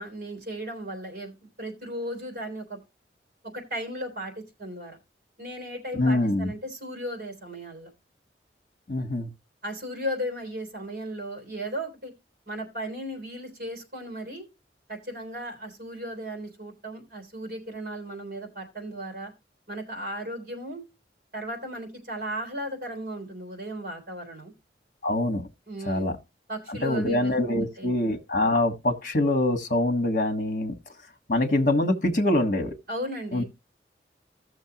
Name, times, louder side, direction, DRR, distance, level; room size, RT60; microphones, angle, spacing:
voice 1, 0.0-2.8 3.5-5.0 5.4-7.9 9.6-12.1 12.4-14.4 14.9-19.3 19.7-20.8 21.3-24.5 25.7-26.1 26.5-27.9 32.9-33.4, equal, 50° right, 3.1 m, -36 dB
voice 2, 5.9-6.5 8.9-9.3 25.0-25.5 25.8-26.2 26.7-30.7 31.3-32.8 33.3-33.4, left 1 dB, 45° left, 1.4 m, -24 dB
16.0 x 6.4 x 2.9 m
head